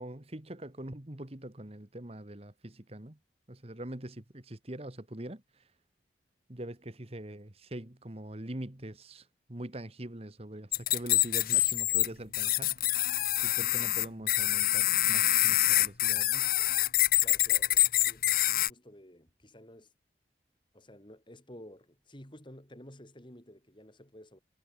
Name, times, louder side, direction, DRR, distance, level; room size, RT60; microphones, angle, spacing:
voice 1, 0.0-3.2 3.5-5.7 6.5-13.0 13.4-16.5, right 1 dB, 35° right, 1.7 m, -43 dB
sound 1, 10.7-12.1 12.3-18.7, left 15 dB, 55° left, 1.1 m, -26 dB
voice 2, 17.2-19.9 20.7-24.4, left 1 dB, 25° left, 5.8 m, -52 dB
head